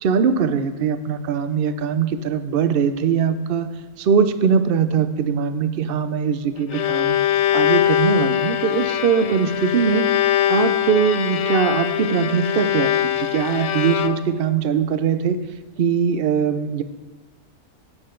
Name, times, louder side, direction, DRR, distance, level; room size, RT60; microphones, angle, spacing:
voice 1, 0.0-3.7 4.0-7.2 7.5-10.1 10.5-15.4 15.8-16.8, right 6 dB, 55° right, 11 dB, 0.6 m, -21 dB
Bowed string instrument, 6.4-14.5, left 11 dB, 65° left, 0.8 m, -22 dB
11.0 x 8.6 x 3.8 m, 1.1 s
omnidirectional pair, 1.5 m